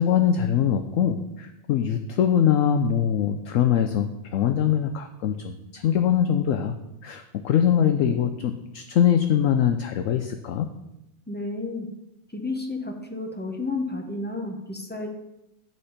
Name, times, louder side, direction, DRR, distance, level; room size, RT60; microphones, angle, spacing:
voice 1, 0.0-6.8 7.0-10.7, left 9 dB, 70° left, 7 dB, 0.8 m, -23 dB
voice 2, 11.3-11.9 12.3-15.1, left 2 dB, 15° left, 2 dB, 0.4 m, -31 dB
10.5 x 4.3 x 5.0 m, 0.91 s
omnidirectional pair, 1.7 m